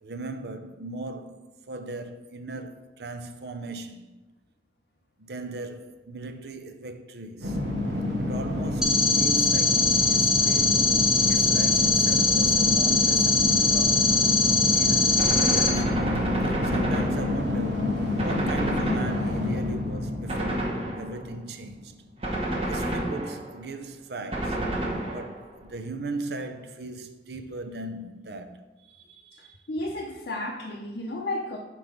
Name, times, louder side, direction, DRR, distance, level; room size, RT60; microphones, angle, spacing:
voice 1, 0.0-4.1 5.2-7.6 8.2-10.9 11.3-14.2 14.7-16.0 16.5-17.9 18.2-20.7 21.0-21.9 22.7-24.6 25.1-28.6 28.9-29.5, right 2 dB, 65° right, 0.6 m, -38 dB
sound 1, 7.4-21.8, left 2 dB, 85° right, 1.3 m, -28 dB
sound 2, 8.8-15.7, left 4 dB, 5° right, 0.7 m, -22 dB
Gunshot gunfire, 15.2-17.7 18.2-19.6 20.3-21.3 22.2-23.6 24.3-25.5, right 1 dB, 35° right, 1.0 m, -30 dB
voice 2, 29.7-31.6, left 1 dB, 60° left, 0.6 m, -32 dB
6.0 x 4.5 x 5.2 m
head